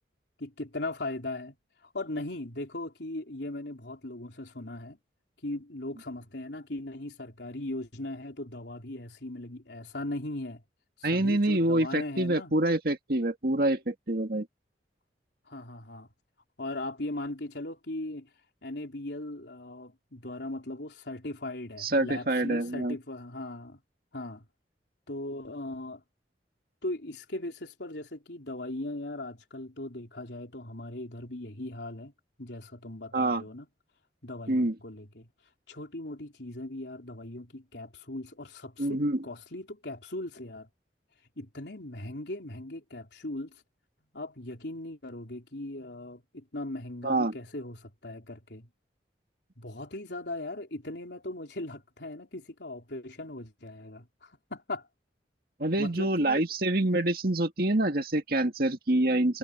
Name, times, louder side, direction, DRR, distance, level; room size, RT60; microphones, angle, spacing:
voice 1, 0.4-1.6 1.9-5.0 5.4-10.6 11.0-12.5 15.5-16.1 16.6-18.3 18.6-23.8 24.1-24.5 25.1-26.0 26.8-32.1 32.4-33.7 34.2-35.3 35.7-40.7 41.4-43.6 44.1-48.7 49.6-54.9 55.8-56.4, left 2 dB, 75° left, 3.7 m, -38 dB
voice 2, 11.0-14.5 21.8-23.0 33.1-33.4 34.5-34.8 38.8-39.2 47.0-47.3 55.6-59.4, right 1 dB, 55° right, 2.0 m, -26 dB
head